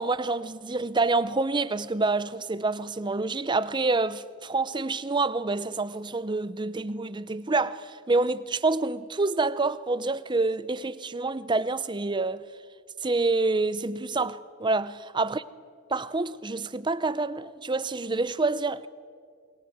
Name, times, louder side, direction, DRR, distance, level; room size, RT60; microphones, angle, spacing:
voice 1, 0.0-12.4 13.0-15.4 15.9-18.9, right 3 dB, 20° right, 0.6 m, -27 dB
29.0 x 22.0 x 8.0 m
head